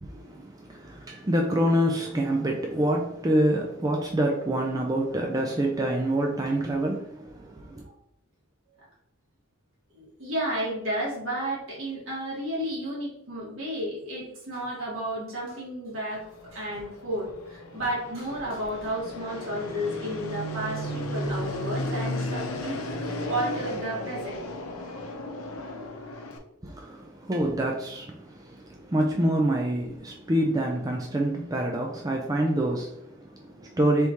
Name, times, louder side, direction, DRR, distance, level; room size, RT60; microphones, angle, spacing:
voice 1, 0.0-7.9 26.6-34.1, right 1 dB, 15° right, 0.4 m, -26 dB
voice 2, 9.9-22.9 23.2-24.4, right 1 dB, 75° right, 1.6 m, -32 dB
Fixed-wing aircraft airplane, 16.2-26.4, left 1 dB, 90° left, 0.7 m, -34 dB
4.1 x 3.5 x 3.0 m
head